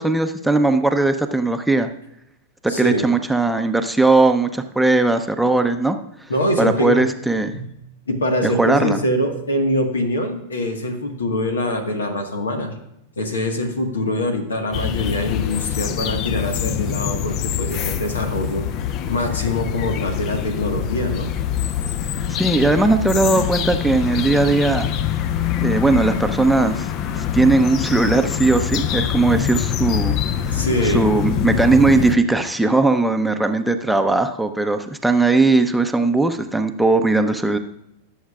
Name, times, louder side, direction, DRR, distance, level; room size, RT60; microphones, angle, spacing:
voice 1, 0.0-1.9 2.6-6.0 6.6-7.5 8.4-9.0 22.3-24.9 25.6-30.1 30.8-37.6, right 2 dB, 5° right, 6 dB, 0.7 m, -18 dB
voice 2, 2.7-3.1 6.3-7.0 7.5-7.7 8.1-12.7 13.2-18.7 19.1-21.3 30.5-31.1, left 1 dB, 85° left, 5 dB, 1.5 m, -23 dB
sound 1, 14.7-32.2, left 9 dB, 45° left, 0.6 m, -24 dB
18.5 x 7.2 x 2.4 m, 0.82 s
hypercardioid pair, 100°, 0 cm